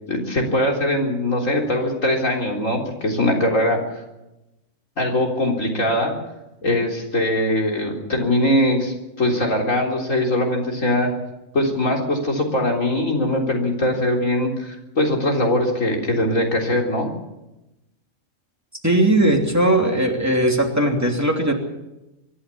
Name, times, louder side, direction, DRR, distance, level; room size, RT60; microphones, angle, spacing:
voice 1, 0.1-4.0 5.0-6.1 6.6-11.1 11.5-17.1, left 1 dB, 90° left, 1 dB, 4.2 m, -21 dB
voice 2, 18.8-21.5, right 1 dB, 10° right, 1 dB, 3.0 m, -18 dB
24.0 x 11.5 x 9.8 m, 0.97 s
omnidirectional pair, 1.3 m